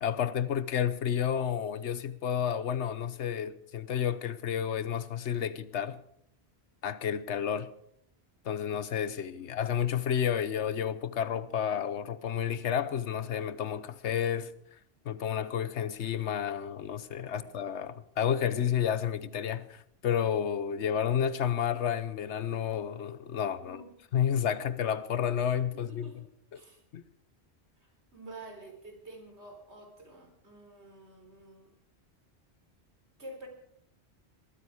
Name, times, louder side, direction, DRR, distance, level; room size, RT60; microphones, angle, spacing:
voice 1, 0.0-6.0 6.8-7.7 8.4-14.5 15.0-23.8 24.1-26.3 26.5-26.6 26.9-27.0, left 9 dB, 85° left, 1.2 m, -31 dB
voice 2, 17.1-17.5 23.6-23.9 24.5-24.6 25.7-26.3 26.5-26.8 27.8-31.7 33.2-33.5, right 2 dB, 80° right, 4.1 m, -49 dB
20.0 x 14.0 x 4.9 m
omnidirectional pair, 1.1 m